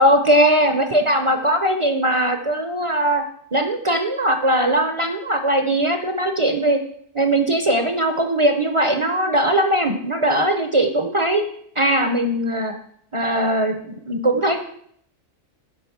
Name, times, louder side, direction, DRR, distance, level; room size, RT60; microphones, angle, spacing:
voice 1, 0.0-3.2 3.5-6.8 7.1-11.4 11.8-12.7 13.1-14.6, right 1 dB, 35° right, 6 dB, 0.5 m, -20 dB
9.6 x 4.1 x 7.1 m, 0.66 s
omnidirectional pair, 1.4 m